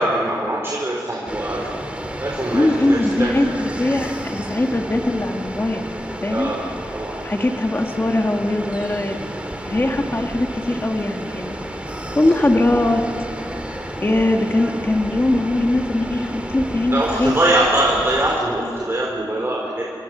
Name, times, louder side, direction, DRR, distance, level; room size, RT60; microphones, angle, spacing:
voice 1, 0.0-1.6 2.2-3.3 6.3-6.6 6.9-7.2 16.9-19.9, right 1 dB, 30° right, -3 dB, 4.2 m, -22 dB
sound 1, 1.3-18.4, right 1 dB, 15° right, 2.6 m, -31 dB
voice 2, 2.5-5.8 6.2-6.5 7.2-9.2 9.6-11.6 12.1-13.0 14.0-17.7, left 1 dB, 25° left, 3 dB, 1.6 m, -20 dB
28.0 x 24.0 x 6.1 m, 2.4 s
wide cardioid pair, 65°, 8 cm